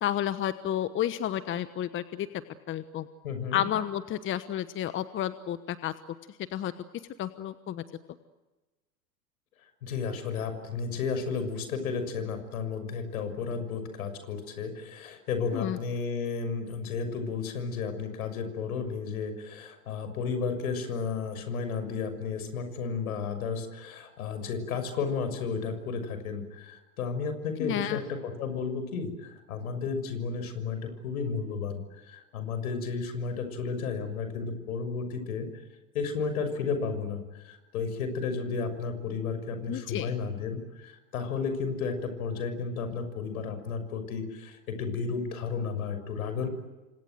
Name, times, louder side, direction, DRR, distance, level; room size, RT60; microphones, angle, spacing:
voice 1, 0.0-2.3 2.7-3.1 3.5-5.9 6.5-6.7 7.2-7.8 15.5-15.8 27.6-28.0 39.7-40.1, left 11 dB, 25° left, 13 dB, 1.2 m, -31 dB
voice 2, 3.2-3.7 9.8-35.5 35.9-46.5, left 5 dB, 65° left, 9 dB, 6.6 m, -33 dB
29.5 x 25.5 x 7.9 m, 1.1 s
hypercardioid pair, 95°, 46 cm